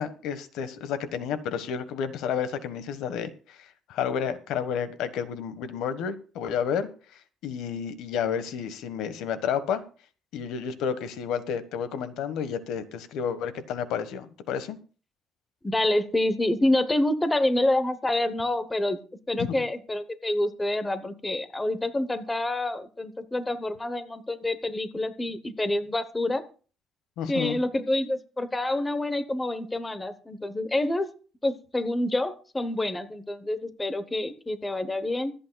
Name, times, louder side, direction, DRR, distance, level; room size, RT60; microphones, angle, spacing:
voice 1, 0.0-6.9 7.4-9.8 10.3-14.8 19.4-19.6 27.2-27.6, left 7 dB, 80° left, 11 dB, 1.4 m, -31 dB
voice 2, 15.6-19.0 19.3-26.4 27.3-31.1 31.4-35.3, left 1 dB, 10° left, 11 dB, 0.9 m, -27 dB
24.5 x 8.7 x 2.3 m, 0.38 s
cardioid pair, 170°, 0 cm